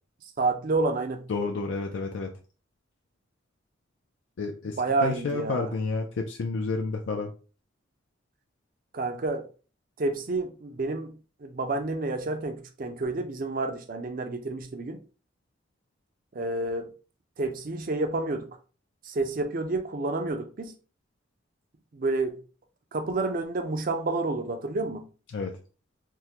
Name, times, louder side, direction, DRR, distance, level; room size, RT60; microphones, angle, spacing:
voice 1, 0.4-1.3 4.8-5.7 8.9-9.4 10.0-11.1 11.4-15.0 16.3-16.9 17.4-18.5 19.0-20.7 21.9-22.4 22.9-25.1, right 3 dB, 45° right, 0.5 m, -29 dB
voice 2, 1.3-2.3 4.4-7.3 25.3-25.6, left 4 dB, 70° left, 0.4 m, -30 dB
3.5 x 2.1 x 2.8 m
head